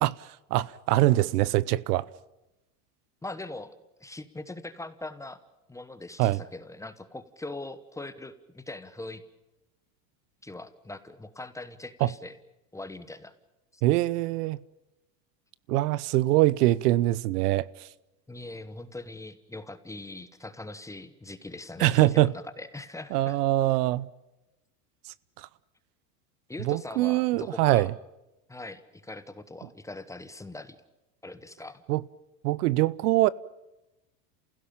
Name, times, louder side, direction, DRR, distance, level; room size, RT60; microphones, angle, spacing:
voice 1, 0.0-2.1 6.2-6.4 12.0-12.1 13.8-14.6 15.7-17.9 21.8-22.3 23.1-24.1 25.4-25.5 26.6-27.9 31.9-32.0 32.4-33.3, right 17 dB, 70° right, 0.8 m, -23 dB
voice 2, 3.2-3.7 4.0-5.4 5.7-9.2 10.4-12.4 12.7-13.3 13.7-13.8 18.3-23.4 26.5-27.9 28.5-30.8 31.2-31.8, left 2 dB, 5° left, 1.1 m, -41 dB
29.0 x 16.5 x 8.7 m
supercardioid pair, 135°, 49 cm